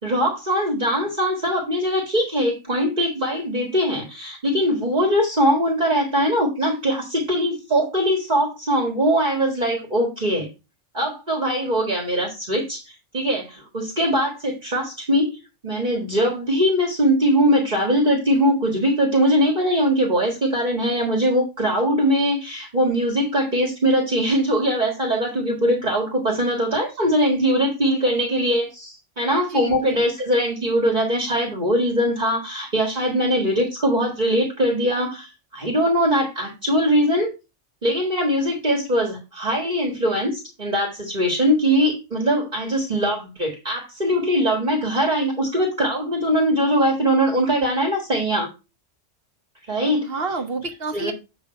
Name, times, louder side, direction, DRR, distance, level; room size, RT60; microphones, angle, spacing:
voice 1, 0.0-10.5 10.9-15.3 15.6-37.3 37.8-48.5 49.7-50.1 50.9-51.1, equal, 40° right, 1 dB, 1.9 m, -21 dB
voice 2, 29.5-30.0 50.0-51.1, right 3 dB, 55° right, 7 dB, 1.1 m, -29 dB
7.9 x 3.3 x 5.8 m, 0.27 s
omnidirectional pair, 1.3 m